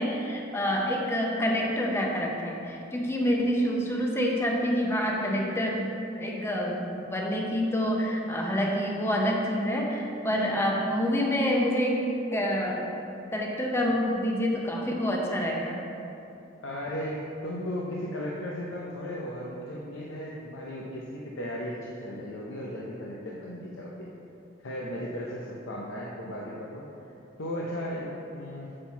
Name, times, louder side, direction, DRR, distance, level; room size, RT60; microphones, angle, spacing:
voice 1, 0.0-5.9 6.1-12.9 13.3-15.8, equal, 15° left, -1 dB, 0.8 m, -27 dB
voice 2, 16.6-24.1 24.6-26.8 27.4-28.7, equal, 85° left, -3 dB, 0.8 m, -36 dB
7.4 x 4.4 x 5.8 m, 2.7 s
head